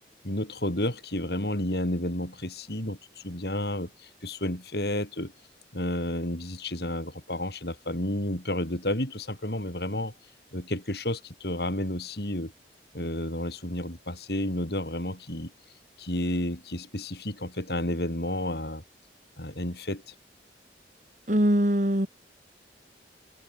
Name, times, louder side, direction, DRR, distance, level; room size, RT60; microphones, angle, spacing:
voice 1, 0.2-5.3 5.7-10.1 10.5-12.5 12.9-15.5 16.0-18.8 19.4-20.1, left 1 dB, 60° left, 5.6 m, -31 dB
voice 2, 21.3-22.1, equal, 45° right, 3.6 m, -22 dB
head